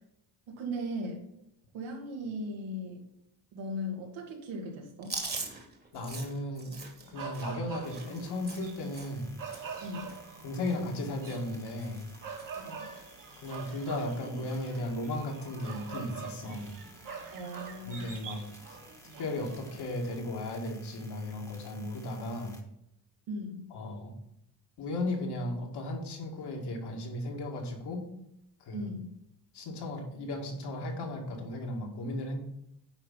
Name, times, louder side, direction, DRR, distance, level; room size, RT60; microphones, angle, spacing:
voice 1, 0.5-1.2 1.7-3.0 3.5-5.2 9.8-10.1 12.6-12.9 17.3-18.1 23.3-23.6 28.7-29.1, equal, 90° right, 0 dB, 2.5 m, -38 dB
Chewing mastication, 5.0-9.3 9.5-9.8 10.1-11.0 11.2-11.5 11.8-12.5 12.9-13.0 14.1-14.5, right 3 dB, 20° right, 1.6 m, -42 dB
voice 2, 5.9-6.7 7.1-9.4 9.6-9.9 10.4-12.1 13.4-16.7 17.8-18.4 18.7-18.8 19.2-22.6 23.7-24.1 24.8-28.1 28.6-28.9 29.5-32.4, left 1 dB, 65° left, 0 dB, 2.3 m, -35 dB
sound 1, 7.0-20.1, right 5 dB, 45° right, 1.7 m, -45 dB
sound 2, 7.8-22.6, left 1 dB, 5° left, 1.4 m, -56 dB
9.7 x 4.1 x 5.8 m, 0.79 s
cardioid pair, 115°, 44 cm